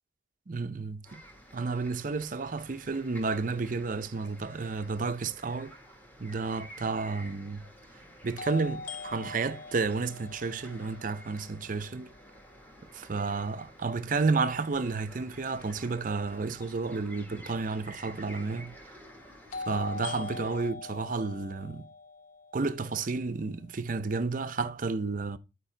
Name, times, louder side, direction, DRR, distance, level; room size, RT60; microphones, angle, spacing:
voice 1, 0.5-1.2 1.5-5.8 6.2-7.7 8.2-12.1 12.9-18.8 19.7-21.9 22.5-25.4, right 4 dB, 40° right, 0.5 m, -31 dB
sound 1, 1.0-20.7, equal, 10° left, 1.6 m, -52 dB
sound 2, 6.4-6.5 8.4-12.3 19.5-23.5, left 3 dB, 40° left, 0.4 m, -42 dB
11.5 x 4.6 x 3.2 m
head